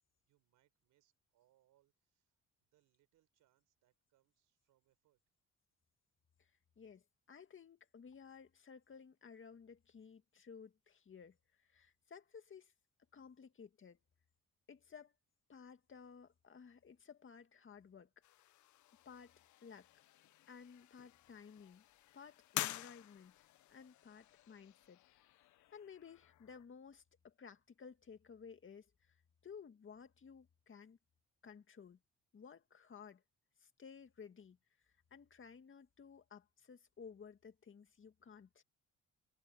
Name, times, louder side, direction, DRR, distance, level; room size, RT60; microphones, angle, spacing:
voice 1, 0.2-5.2, right 14 dB, 90° right, 5.3 m, -79 dB
voice 2, 6.8-12.7 13.1-14.0 14.7-15.1 15.5-18.1 19.1-19.3 19.6-19.9 20.5-21.8 22.1-25.3 25.7-29.2 29.4-31.0 31.4-32.0 32.3-33.2 33.6-34.6 35.1-38.6, left 6 dB, 40° left, 2.2 m, -56 dB
sound 1, 18.2-26.7, left 15 dB, 70° left, 0.7 m, -49 dB
cardioid pair, 90°, 30 cm